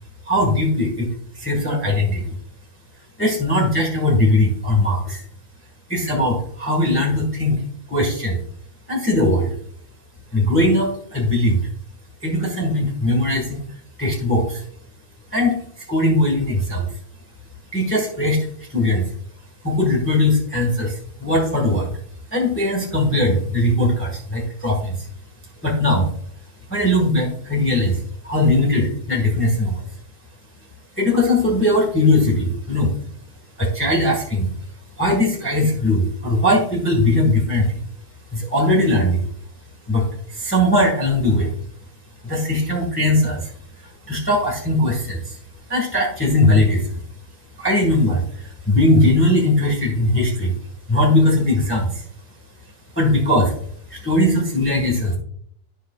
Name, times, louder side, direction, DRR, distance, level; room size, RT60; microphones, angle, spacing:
voice 1, 0.3-1.1 1.4-2.3 3.2-5.2 5.9-7.6 7.9-8.4 8.9-9.5 10.3-11.7 12.2-13.6 14.0-14.6 15.3-15.6 15.9-16.9 17.7-19.1 19.6-21.9 22.3-25.1 25.6-26.1 26.7-28.0 28.2-29.8 31.0-32.9 33.6-34.5 35.0-37.8 38.3-39.3 39.9-40.1 40.3-41.5 42.2-43.5 44.1-45.3 45.7-47.0 47.6-48.2 48.7-50.6 50.9-52.0 53.0-53.5 53.9-55.2, left 1 dB, 10° left, -2 dB, 1.4 m, -19 dB
12.5 x 5.0 x 2.4 m, 0.64 s
omnidirectional pair, 1.4 m